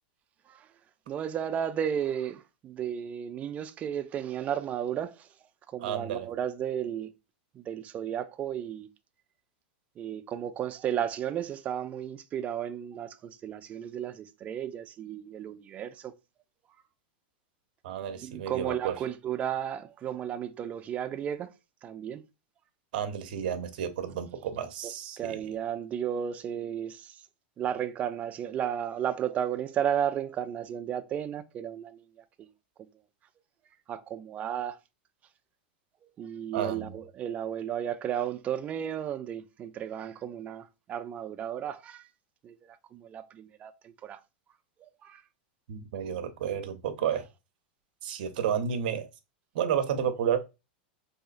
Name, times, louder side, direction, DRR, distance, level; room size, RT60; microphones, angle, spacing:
voice 1, 1.1-5.2 5.7-7.1 7.6-8.9 10.0-16.1 18.2-21.5 21.8-22.2 25.2-27.2 27.6-32.0 33.9-34.8 36.2-40.6 40.9-42.0 42.4-42.6 42.9-44.2 45.0-45.2, right 9 dB, 25° right, 0.3 m, -33 dB
voice 2, 5.8-6.3 17.8-18.9 22.9-25.4 36.5-37.0 45.7-47.2 48.0-49.1 49.5-50.4, right 8 dB, 65° right, 0.6 m, -31 dB
3.6 x 2.8 x 2.4 m
supercardioid pair, 130°, 5 cm